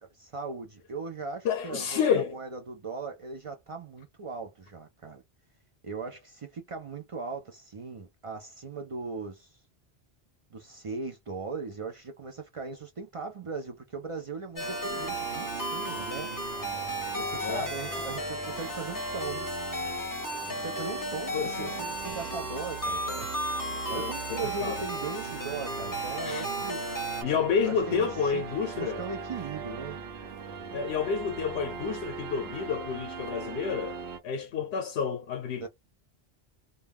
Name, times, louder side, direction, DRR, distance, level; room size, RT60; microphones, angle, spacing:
voice 1, 0.1-5.2 5.8-9.6 10.5-16.3 17.1-19.5 20.5-23.3 23.9-26.8 27.6-28.4 28.8-30.0 35.6-35.7, right 4 dB, 50° right, 0.4 m, -39 dB
voice 2, 1.4-2.3 17.4-17.7 21.3-21.7 23.9-24.8 26.2-26.4 27.2-29.0 30.7-34.0 34.2-35.7, left 6 dB, 85° left, 0.9 m, -30 dB
sound 1, 14.6-27.2, equal, 25° left, 0.6 m, -35 dB
sound 2, 14.6-34.2, right 6 dB, 75° right, 0.9 m, -40 dB
2.2 x 2.2 x 3.3 m
omnidirectional pair, 1.1 m